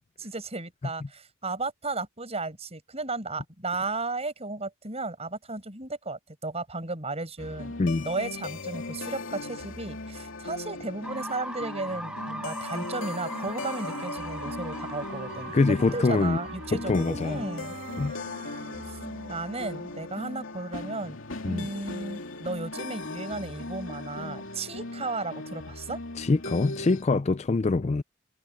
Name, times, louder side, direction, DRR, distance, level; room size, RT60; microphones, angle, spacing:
voice 1, 0.2-7.7 8.0-17.7 18.9-19.0 19.3-21.2 21.4-26.0, right 3 dB, 30° right, 6.3 m, -34 dB
sound 1, 7.4-27.0, left 2 dB, 60° left, 3.0 m, -39 dB
sound 2, 11.0-18.9, right 1 dB, 5° right, 1.5 m, -41 dB
Wind instrument woodwind instrument, 12.0-20.3, right 2 dB, 50° right, 2.2 m, -43 dB
voice 2, 15.5-16.4 16.7-17.4 18.0-18.1 21.4-21.7 26.2-28.0, left 3 dB, 30° left, 0.4 m, -24 dB
head